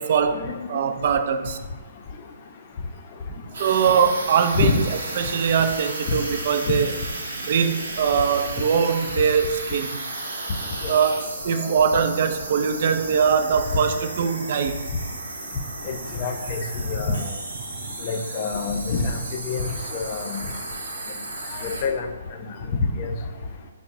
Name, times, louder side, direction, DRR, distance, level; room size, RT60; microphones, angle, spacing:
voice 1, 0.0-1.6 3.6-6.9 7.5-10.0 10.9-14.9, right 6 dB, 50° right, 9 dB, 0.3 m, -22 dB
sound 1, 3.5-21.8, right 2 dB, 65° right, 0.8 m, -34 dB
voice 2, 11.5-11.8 15.9-17.3 18.0-20.4 21.6-22.1 22.7-23.1, left 4 dB, 40° left, 5 dB, 0.4 m, -27 dB
4.3 x 2.1 x 3.5 m, 1.3 s
figure-of-eight pair, 130°, 0 cm